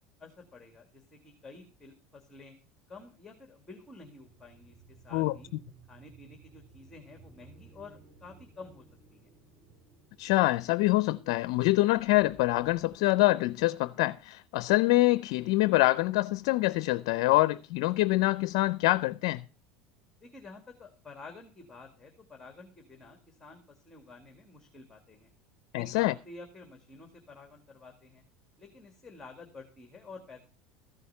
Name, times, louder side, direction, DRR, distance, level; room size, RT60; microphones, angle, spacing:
voice 1, 0.2-2.5 2.9-5.5 5.9-8.8 9.1-9.3 20.2-25.3 25.7-28.2 28.6-30.4, left 3 dB, 10° left, 2.1 m, -50 dB
sound 1, 4.2-13.0, right 4 dB, 25° right, 5.1 m, -58 dB
voice 2, 10.2-19.4 25.7-26.1, left 19 dB, 70° left, 0.5 m, -25 dB
14.5 x 6.5 x 5.6 m
supercardioid pair, 110°, 3 cm